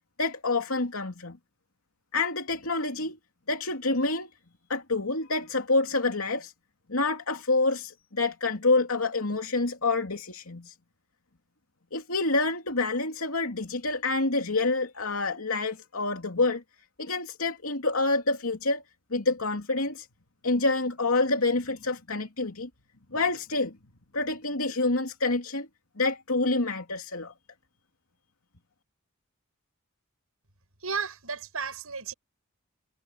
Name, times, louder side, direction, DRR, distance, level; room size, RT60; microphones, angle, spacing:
voice 1, 0.2-1.4 2.1-3.2 3.5-4.3 4.7-6.5 6.9-10.7 11.9-16.6 17.0-18.8 19.1-20.1 20.4-22.7 23.1-23.8 24.1-25.7 26.0-27.3, left 3 dB, 75° left, 2.9 m, -27 dB
voice 2, 30.8-32.1, right 5 dB, 85° right, 6.8 m, -33 dB
head